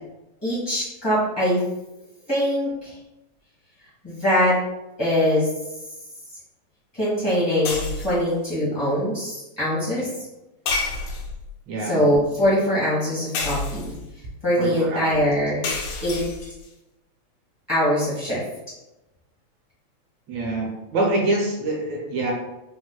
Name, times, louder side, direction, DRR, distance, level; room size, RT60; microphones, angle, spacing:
voice 1, 0.4-1.6 2.3-2.9 4.0-4.5 5.0-5.5 7.0-10.1 11.9-13.9 14.4-15.7 16.0-16.2 17.7-18.4, equal, 30° left, -11 dB, 0.4 m, -22 dB
sound 1, 7.7-8.3 10.7-11.5 13.3-14.1 15.6-16.7, left 3 dB, 85° left, 2.1 m, -29 dB
voice 2, 11.7-12.0 14.6-15.3 20.3-22.3, right 2 dB, 75° right, -2 dB, 1.9 m, -26 dB
4.8 x 2.1 x 2.3 m, 0.95 s
omnidirectional pair, 3.3 m